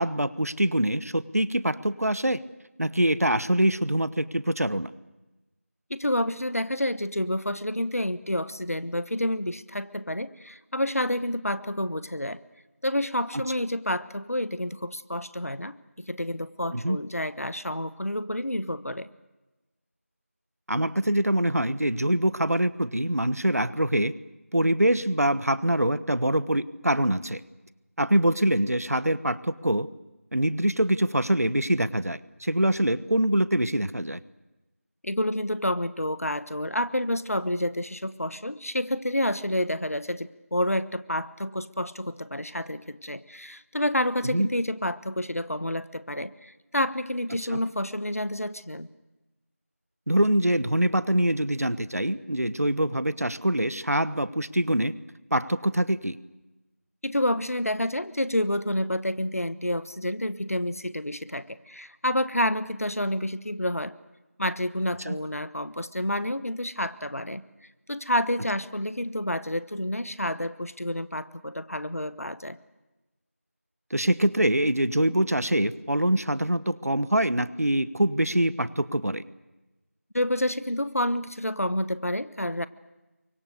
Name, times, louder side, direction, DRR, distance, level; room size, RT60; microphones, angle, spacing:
voice 1, 0.0-2.4 2.8-4.9 16.7-17.0 20.7-24.1 24.5-27.4 28.0-29.9 30.3-34.2 44.2-44.5 47.5-47.6 50.1-54.9 55.3-56.2 65.1-65.2 73.9-79.2, right 1 dB, 75° right, 15 dB, 1.2 m, -24 dB
voice 2, 5.9-12.4 12.8-19.1 35.0-48.9 57.0-63.9 64.4-67.4 67.9-72.6 80.1-82.7, left 1 dB, 70° left, 14 dB, 1.3 m, -29 dB
29.0 x 24.0 x 6.7 m, 1.1 s
figure-of-eight pair, 180°, 8 cm